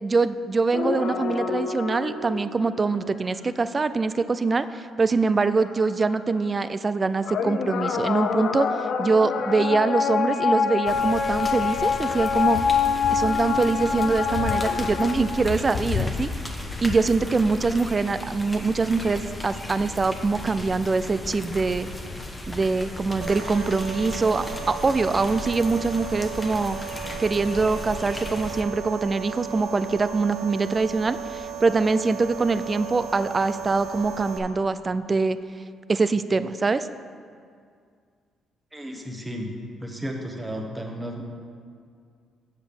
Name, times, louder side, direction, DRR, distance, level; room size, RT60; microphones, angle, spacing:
voice 1, 0.0-8.7 9.0-12.6 13.1-16.3 16.8-21.9 22.5-26.8 27.2-35.4 35.9-36.9, right 4 dB, 30° right, 13 dB, 0.3 m, -24 dB
sound 1, 0.7-3.3 6.5-6.6 7.2-17.0, left 6 dB, 65° left, 0.5 m, -26 dB
sound 2, 10.9-28.6, left 2 dB, 15° left, 1.0 m, -36 dB
sound 3, 23.2-34.4, right 8 dB, 80° right, 0.8 m, -36 dB
voice 2, 38.7-39.5 39.8-41.2, equal, 15° right, 1 dB, 1.2 m, -33 dB
7.4 x 5.0 x 7.0 m, 2.2 s
cardioid pair, 90°, 0 cm